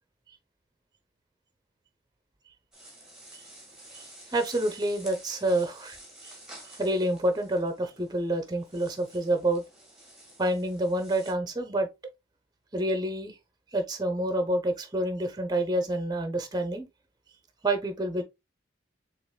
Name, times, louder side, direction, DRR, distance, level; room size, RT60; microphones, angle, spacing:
sound 1, 2.7-11.3, right 1 dB, 5° right, 1.8 m, -50 dB
voice 1, 4.3-6.0 6.8-9.6 10.4-11.9 12.7-13.3 13.7-16.9 17.6-18.2, right 1 dB, 20° right, 0.9 m, -28 dB
6.9 x 3.1 x 2.3 m
head